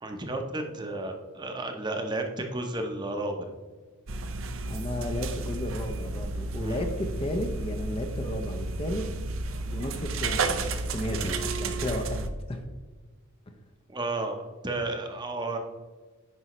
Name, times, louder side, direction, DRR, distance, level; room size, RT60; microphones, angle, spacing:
voice 1, 0.0-3.6 6.6-6.9 13.9-15.6, right 2 dB, 20° right, 4 dB, 0.7 m, -32 dB
sound 1, 4.1-12.3, right 3 dB, 65° right, 0.7 m, -32 dB
voice 2, 4.6-9.0 9.7-12.6, left 1 dB, 25° left, 5 dB, 0.6 m, -33 dB
9.6 x 5.4 x 3.1 m, 1.4 s
head